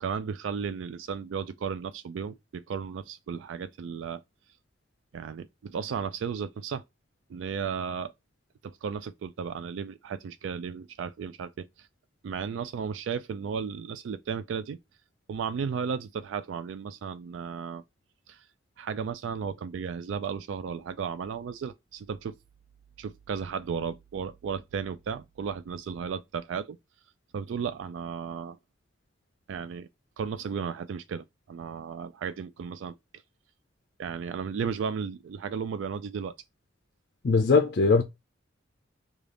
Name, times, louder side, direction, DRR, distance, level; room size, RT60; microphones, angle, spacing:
voice 1, 0.0-4.2 5.1-6.8 7.3-8.1 8.6-11.9 12.2-14.8 15.3-17.8 18.3-18.4 18.8-22.3 23.0-26.8 27.3-28.6 29.5-29.9 30.2-32.9 34.0-36.3, right 6 dB, 85° right, 0.3 m, -34 dB
voice 2, 37.2-38.0, left 4 dB, 55° left, 0.4 m, -20 dB
3.4 x 2.4 x 3.7 m
head